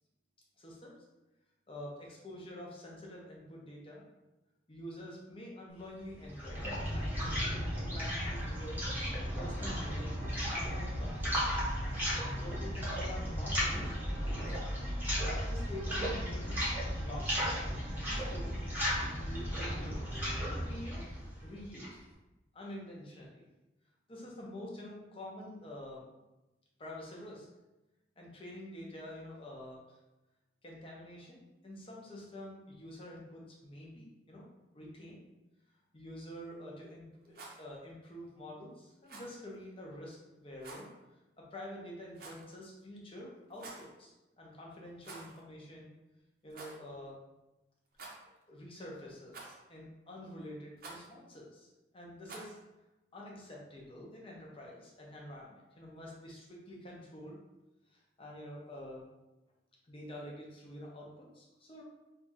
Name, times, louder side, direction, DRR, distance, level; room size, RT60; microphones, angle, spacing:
voice 1, 0.6-0.9 1.7-4.0 4.7-7.6 7.9-8.9 9.4-11.4 11.8-13.9 14.2-14.5 15.2-16.7 17.0-17.5 18.0-18.6 19.1-21.1 21.4-22.0 22.5-23.5 24.1-26.0 26.8-27.5 28.2-30.0 30.6-34.4 34.7-35.2 35.9-40.9 41.4-45.9 46.4-47.2 48.5-52.6 53.1-57.4 57.9-59.0 59.9-61.8, left 1 dB, 30° left, -3 dB, 0.7 m, -47 dB
sound 1, 6.0-22.0, equal, 10° right, 0.9 m, -35 dB
Rattle, 37.2-37.6 39.0-39.3 40.6-40.9 42.1-42.5 43.5-43.9 45.0-45.4 45.7-45.8 46.5-46.8 47.9-48.4 49.3-49.7 50.8-51.1 52.2-52.6, right 3 dB, 50° right, 0.6 m, -49 dB
2.7 x 2.4 x 4.0 m, 1.0 s
head